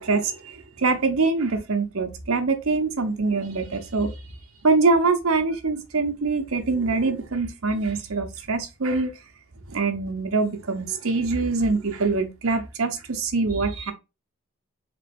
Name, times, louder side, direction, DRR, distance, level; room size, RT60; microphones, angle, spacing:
voice 1, 0.0-4.1 4.6-9.1 9.7-13.9, right 3 dB, 85° right, 0.8 m, -24 dB
3.4 x 3.0 x 3.3 m
head